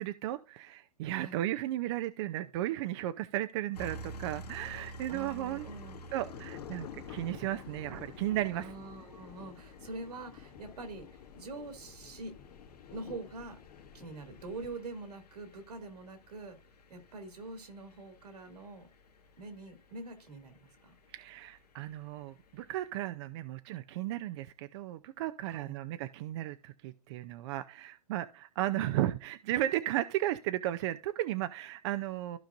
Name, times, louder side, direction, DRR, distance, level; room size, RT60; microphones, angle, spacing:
voice 1, 0.0-5.7 6.1-8.7 21.1-32.4, right 14 dB, 45° right, 0.6 m, -35 dB
sound 1, 3.7-22.9, right 1 dB, 85° left, 2.1 m, -52 dB
sound 2, 4.5-14.8, left 10 dB, 60° left, 2.1 m, -51 dB
voice 2, 5.1-6.0 8.5-12.3 12.9-13.6 13.9-16.6 16.9-18.9 19.4-20.9 25.4-25.8, right 3 dB, 80° right, 2.6 m, -45 dB
15.0 x 5.1 x 2.6 m
hypercardioid pair, 130°, 20 cm